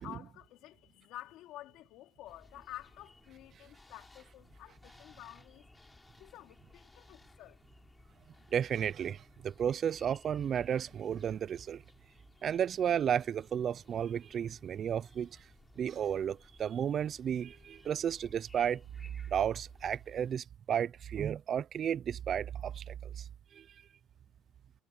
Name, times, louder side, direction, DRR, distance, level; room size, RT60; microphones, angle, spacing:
voice 1, 0.0-5.7 6.2-7.6, left 15 dB, 65° left, 4.0 m, -50 dB
sound 1, 2.2-20.4, left 2 dB, 10° left, 4.3 m, -60 dB
voice 2, 8.5-11.8 12.4-15.5 15.8-18.8 19.3-23.7, right 9 dB, 35° right, 0.3 m, -33 dB
cardioid pair, 155°, 0 cm